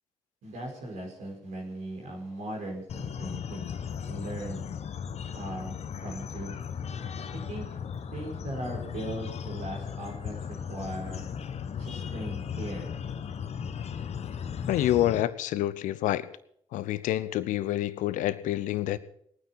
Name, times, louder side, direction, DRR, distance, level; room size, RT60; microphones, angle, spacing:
voice 1, 0.4-3.7 4.1-4.6 5.3-5.8 6.0-6.5 7.3-7.8 8.1-11.3 11.8-12.9, right 1 dB, 70° right, 4.7 m, -38 dB
sound 1, 2.9-15.2, left 7 dB, 50° left, 1.1 m, -36 dB
voice 2, 14.7-16.3 16.7-19.0, left 13 dB, 70° left, 0.7 m, -27 dB
19.5 x 9.4 x 5.7 m
hypercardioid pair, 45°, 14 cm